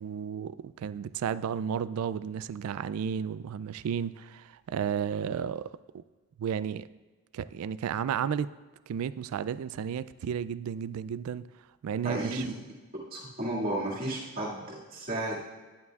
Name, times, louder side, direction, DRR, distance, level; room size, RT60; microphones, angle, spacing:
voice 1, 0.0-6.0 6.4-6.9 7.3-8.5 8.9-11.5 11.8-12.4, right 8 dB, 80° right, 0.3 m, -33 dB
voice 2, 12.0-12.5 13.1-15.4, right 1 dB, 40° right, 2.1 m, -33 dB
10.5 x 9.5 x 2.3 m
head